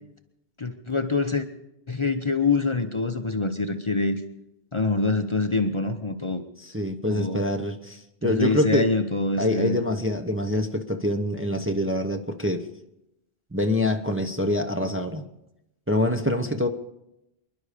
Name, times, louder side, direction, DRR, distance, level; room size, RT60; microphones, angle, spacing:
voice 1, 0.6-1.5 1.9-4.2 4.7-6.4 7.1-7.4 8.2-9.8, left 3 dB, 30° left, 7 dB, 0.8 m, -25 dB
voice 2, 6.6-8.9 9.4-12.7 13.5-15.2 15.9-16.7, left 1 dB, 15° right, 4 dB, 0.8 m, -25 dB
25.5 x 11.5 x 5.0 m, 0.88 s
omnidirectional pair, 1.0 m